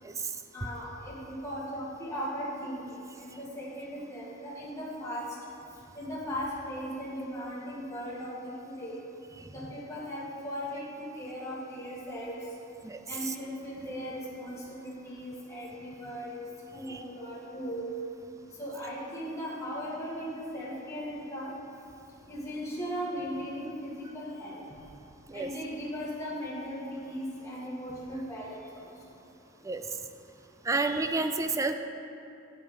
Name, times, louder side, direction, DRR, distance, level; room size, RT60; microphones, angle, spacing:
voice 1, 0.0-0.4 9.4-9.5 12.8-13.3 16.9-17.0 25.3-25.5 29.6-29.8 30.6-31.7, right 3 dB, 15° right, 7 dB, 0.4 m, -31 dB
voice 2, 0.5-2.8 3.2-5.2 5.9-8.3 8.6-9.0 9.5-12.4 13.1-16.4 16.7-17.8 18.6-21.5 22.3-24.6 25.3-28.8, equal, 15° left, -8 dB, 1.6 m, -38 dB
9.1 x 6.9 x 4.2 m, 2.6 s
head